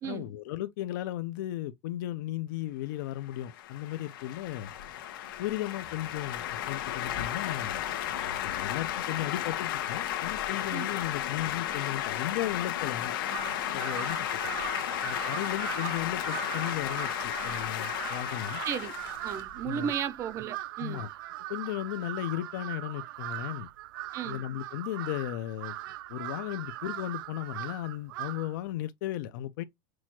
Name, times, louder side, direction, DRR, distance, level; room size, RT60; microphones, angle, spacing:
voice 1, 0.0-4.7 5.4-7.8 8.4-13.1 13.7-14.3 15.0-18.6 19.6-19.9 20.8-21.1 21.5-23.7 24.3-25.8 26.1-29.6, left 13 dB, 65° left, 0.5 m, -35 dB
sound 1, 3.3-19.9, left 11 dB, 80° left, 1.1 m, -34 dB
Crow, 13.2-28.6, right 15 dB, 75° right, 0.4 m, -40 dB
voice 2, 19.2-21.0 24.1-24.4, right 9 dB, 25° right, 0.5 m, -34 dB
6.1 x 2.3 x 2.9 m
supercardioid pair, 170°, 11 cm